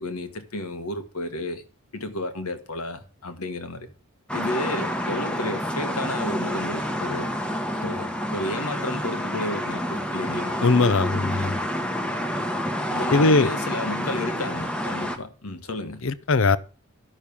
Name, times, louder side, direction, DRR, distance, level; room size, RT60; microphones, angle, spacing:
voice 1, 0.0-1.6 1.9-3.9 4.3-7.3 7.7-10.6 12.9-16.0, left 1 dB, 80° left, 1.6 m, -32 dB
sound 1, 4.3-15.2, equal, 5° left, 1.0 m, -28 dB
voice 2, 10.6-11.6 13.1-13.5 16.0-16.6, left 3 dB, 60° left, 0.6 m, -20 dB
12.0 x 6.4 x 7.1 m
head